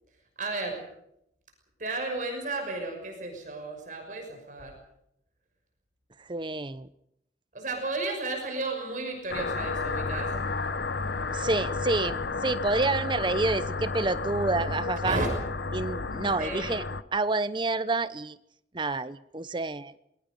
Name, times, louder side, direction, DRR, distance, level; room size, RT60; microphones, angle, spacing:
voice 1, 0.4-0.8 1.8-4.7 7.5-10.3 15.0-15.3 16.4-16.8, right 2 dB, 45° right, 3 dB, 6.1 m, -33 dB
voice 2, 6.3-6.9 11.3-15.2 15.7-16.8 17.1-18.4 18.7-20.0, right 3 dB, 25° right, 15 dB, 0.8 m, -28 dB
sound 1, 9.3-17.0, left 3 dB, 70° left, 0.9 m, -32 dB
27.5 x 21.5 x 5.4 m, 0.78 s
head